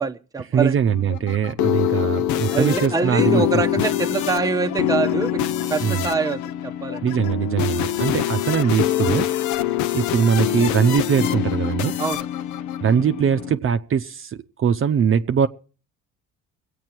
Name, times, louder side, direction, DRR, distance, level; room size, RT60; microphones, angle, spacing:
voice 1, 0.0-0.8 2.5-7.0 12.0-12.2, right 4 dB, 10° right, 0.8 m, -25 dB
voice 2, 0.5-3.6 5.8-6.0 7.0-9.3 9.9-12.0 12.8-15.5, right 7 dB, 45° right, 0.7 m, -21 dB
sound 1, 0.9-13.5, left 11 dB, 75° left, 0.7 m, -24 dB
22.5 x 8.6 x 4.5 m
cardioid pair, 85°, 30 cm